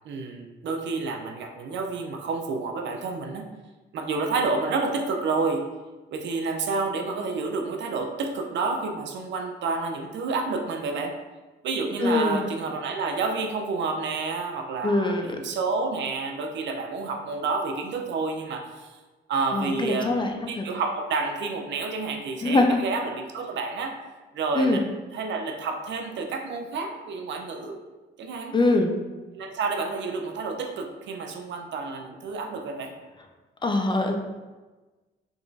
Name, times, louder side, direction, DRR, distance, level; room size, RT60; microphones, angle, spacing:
voice 1, 0.1-3.4 3.9-5.7 6.1-11.2 11.6-18.9 19.3-24.0 24.3-24.9 25.1-27.8 28.2-28.5 29.3-32.9, right 4 dB, 65° right, 4 dB, 0.5 m, -29 dB
voice 2, 12.0-12.5 14.8-15.4 19.5-20.7 22.4-22.8 24.6-24.8 28.5-28.9 33.6-34.2, left 2 dB, 25° left, 4 dB, 0.4 m, -23 dB
3.6 x 2.9 x 2.6 m, 1.2 s
cardioid pair, 90°, 20 cm